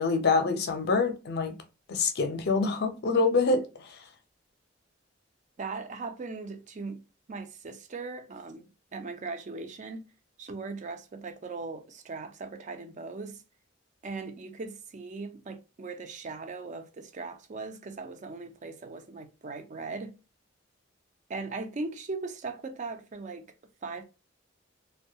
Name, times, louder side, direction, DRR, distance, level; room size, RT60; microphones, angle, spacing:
voice 1, 0.0-1.5 1.9-3.6, left 4 dB, 55° left, 0.5 m, -25 dB
voice 2, 5.6-7.0 7.3-10.0 10.4-13.4 14.0-20.1 21.3-23.5 23.8-24.0, right 3 dB, 40° right, 0.4 m, -39 dB
2.2 x 2.1 x 2.7 m
head